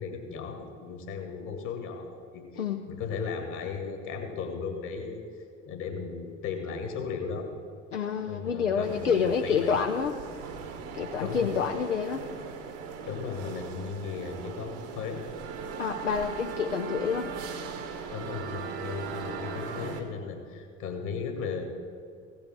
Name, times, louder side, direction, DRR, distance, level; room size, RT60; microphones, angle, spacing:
voice 1, 0.0-5.2 5.7-7.5 8.3-9.8 11.2-11.5 13.1-15.2 18.1-21.6, left 5 dB, 55° left, 4 dB, 2.1 m, -36 dB
voice 2, 2.6-2.9 7.9-10.1 10.9-12.2 15.8-17.3, left 6 dB, 85° left, 4 dB, 0.5 m, -28 dB
sound 1, 8.8-20.0, right 5 dB, 65° right, 1.3 m, -39 dB
16.0 x 5.6 x 7.6 m, 2.2 s
figure-of-eight pair, 50°, 36 cm